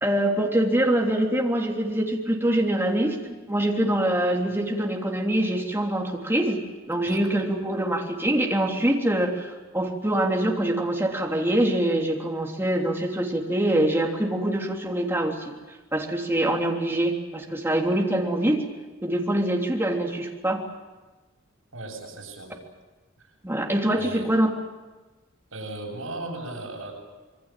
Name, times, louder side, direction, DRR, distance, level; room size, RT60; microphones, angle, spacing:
voice 1, 0.0-3.2 3.5-15.5 15.9-18.6 19.0-20.6 23.4-24.5, right 1 dB, 10° right, 0 dB, 3.4 m, -24 dB
voice 2, 21.7-22.5 23.2-23.3 24.0-24.3 25.5-26.9, right 2 dB, 85° right, 0 dB, 7.7 m, -36 dB
26.5 x 22.5 x 7.6 m, 1.2 s
head